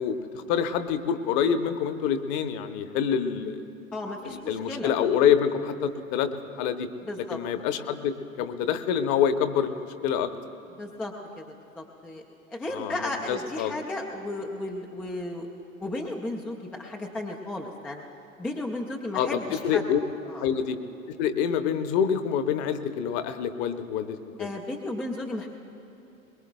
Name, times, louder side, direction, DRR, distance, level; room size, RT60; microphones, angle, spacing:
voice 1, 0.0-3.6 4.2-6.3 6.6-6.9 7.3-10.3 12.7-13.7 19.1-19.4 19.6-20.0 20.4-20.8 21.1-24.5, left 8 dB, 35° left, 10 dB, 0.9 m, -26 dB
voice 2, 3.9-4.9 7.0-7.4 10.8-12.2 12.5-15.5 15.8-18.0 18.4-19.8 20.3-20.5 24.4-25.5, left 2 dB, 5° left, 1 dB, 0.3 m, -34 dB
22.5 x 21.5 x 2.3 m, 2.9 s
figure-of-eight pair, 95°, 41 cm